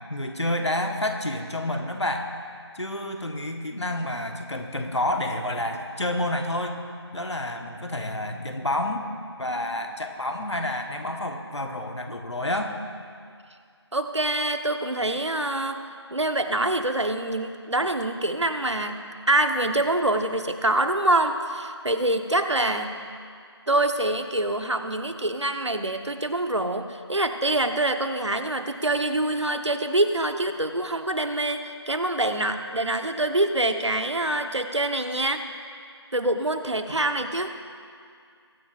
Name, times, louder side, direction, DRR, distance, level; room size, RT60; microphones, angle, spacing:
voice 1, 0.1-2.3 2.7-6.8 7.1-9.0 9.4-12.7 36.9-37.0, left 1 dB, 80° left, 4 dB, 1.3 m, -29 dB
voice 2, 13.9-15.8 16.1-23.0 23.7-35.4 36.1-37.5, right 1 dB, 85° right, 7 dB, 1.1 m, -25 dB
21.5 x 10.0 x 2.5 m, 2.3 s
figure-of-eight pair, 180°, 15 cm